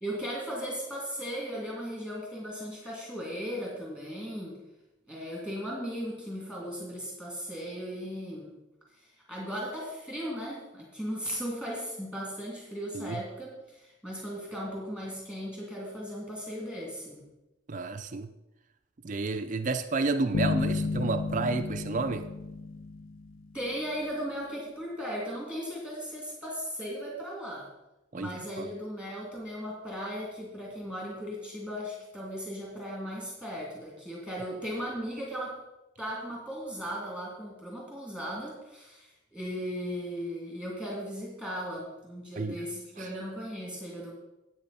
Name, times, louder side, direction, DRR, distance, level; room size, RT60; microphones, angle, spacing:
voice 1, 0.0-4.6 5.1-8.5 8.9-17.2 23.5-27.7 28.1-35.6 36.0-44.1, equal, 10° left, -4 dB, 2.6 m, -37 dB
voice 2, 17.7-18.3 19.0-22.3 28.1-28.7 42.4-42.7 43.0-43.1, right 3 dB, 40° right, 8 dB, 0.5 m, -31 dB
sound 1, 20.3-23.7, left 4 dB, 80° left, 0.5 m, -32 dB
12.0 x 8.6 x 4.2 m, 0.96 s
head